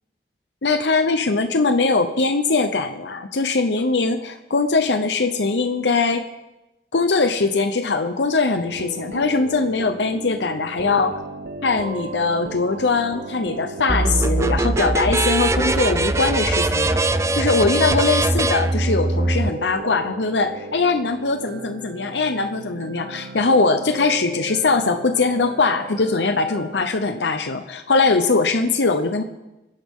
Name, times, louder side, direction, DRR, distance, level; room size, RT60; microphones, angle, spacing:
voice 1, 0.6-6.3 6.9-11.2 11.6-17.0 17.3-29.2, left 3 dB, 90° left, 7 dB, 0.8 m, -21 dB
sound 1, 8.6-26.8, right 2 dB, 60° right, 0.8 m, -35 dB
sound 2, 13.9-19.5, right 2 dB, 15° right, 0.4 m, -21 dB
25.5 x 10.5 x 3.7 m, 1.0 s
head